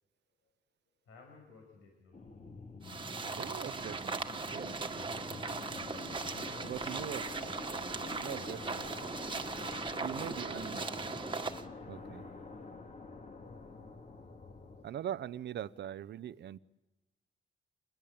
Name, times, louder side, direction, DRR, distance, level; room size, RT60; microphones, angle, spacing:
voice 1, 1.0-2.2 4.5-5.6 6.1-6.7 8.4-8.7 10.2-10.7 11.7-12.5, left 4 dB, 75° left, 6.2 m, -58 dB
sound 1, 2.1-14.8, left 3 dB, 40° left, 3.1 m, -47 dB
sound 2, 2.8-11.6, right 4 dB, 25° right, 1.8 m, -39 dB
voice 2, 3.4-4.7 6.6-7.3 8.1-8.8 10.0-10.8 11.9-12.2 14.8-16.6, right 10 dB, 60° right, 0.8 m, -41 dB
26.5 x 21.5 x 8.8 m
cardioid pair, 90°, 20 cm